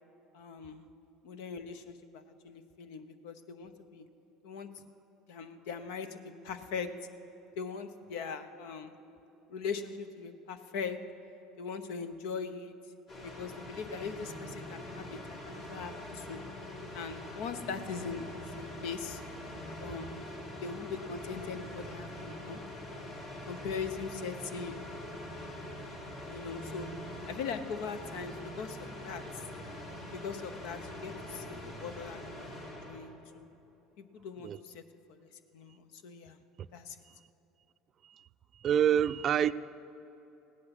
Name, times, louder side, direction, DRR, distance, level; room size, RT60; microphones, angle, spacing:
voice 1, 0.3-0.8 1.2-4.0 4.4-4.7 5.3-6.9 7.6-8.9 9.5-11.0 11.6-12.7 13.2-16.4 16.9-19.2 19.8-20.3 20.6-22.6 23.5-24.8 26.3-26.9 27.3-29.4 30.1-33.5 34.0-34.8 35.1-36.4 36.7-37.0, left 5 dB, 75° left, 0.9 m, -41 dB
sound 1, 13.1-33.0, left 1 dB, 55° left, 3.4 m, -44 dB
voice 2, 38.5-39.5, right 9 dB, 45° right, 0.4 m, -27 dB
16.5 x 10.5 x 6.0 m
supercardioid pair, 95°, 0 cm